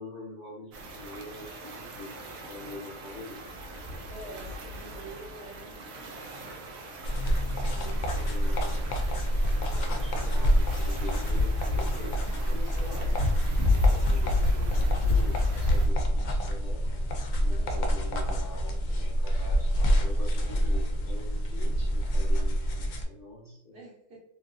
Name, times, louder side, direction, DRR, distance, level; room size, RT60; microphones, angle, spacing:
voice 1, 0.0-2.1 2.4-3.4 5.0-5.1 5.9-6.3 8.1-8.9 9.6-12.1 12.4-13.2 13.7-16.9 17.4-23.8, left 2 dB, 45° left, -7 dB, 0.9 m, -44 dB
sound 1, 0.7-15.9, left 2 dB, 90° right, 1.0 m, -31 dB
voice 2, 4.0-6.6 7.1-8.0 17.5-17.9 23.7-24.2, right 3 dB, 55° right, -6 dB, 0.9 m, -47 dB
sound 2, 7.0-23.0, equal, 80° left, 0.4 m, -27 dB
3.0 x 2.6 x 2.4 m, 0.84 s
omnidirectional pair, 1.4 m